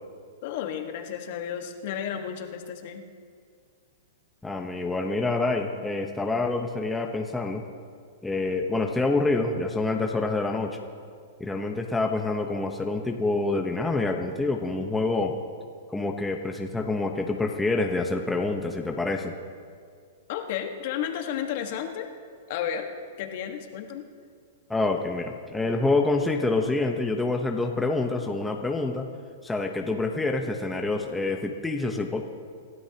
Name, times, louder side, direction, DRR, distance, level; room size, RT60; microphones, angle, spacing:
voice 1, 0.4-3.0 20.3-22.1 22.5-22.9 23.2-24.1, left 9 dB, 55° left, 4 dB, 1.5 m, -32 dB
voice 2, 4.4-7.6 8.2-10.8 11.4-15.4 15.9-19.3 24.7-29.1 29.4-32.2, left 3 dB, 5° left, 2 dB, 1.0 m, -27 dB
26.5 x 12.5 x 2.9 m, 2.1 s
hypercardioid pair, 140°, 0 cm